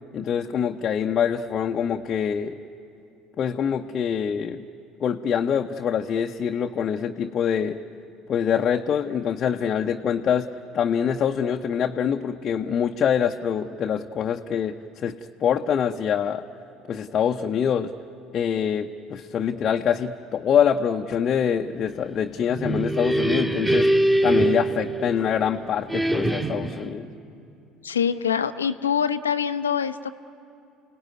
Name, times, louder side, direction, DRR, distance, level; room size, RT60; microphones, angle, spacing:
voice 1, 0.1-2.6 3.4-4.6 5.0-7.8 8.3-16.4 16.9-17.9 18.3-23.9 24.2-27.1, left 8 dB, 40° left, 3 dB, 0.8 m, -25 dB
sound 1, 22.3-25.4 25.9-26.9, right 1 dB, 15° right, 2.2 m, -23 dB
voice 2, 27.8-30.1, left 7 dB, 80° left, 11 dB, 0.7 m, -24 dB
30.0 x 18.0 x 9.5 m, 2.7 s
figure-of-eight pair, 60°, 0 cm